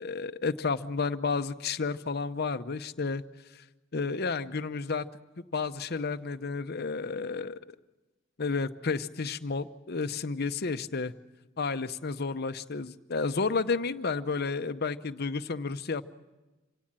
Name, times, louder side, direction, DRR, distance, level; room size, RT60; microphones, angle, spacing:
voice 1, 0.0-3.2 3.9-5.1 5.5-7.6 8.4-11.1 11.6-16.1, left 4 dB, 55° left, 10 dB, 0.8 m, -31 dB
26.0 x 17.5 x 8.8 m, 1.1 s
head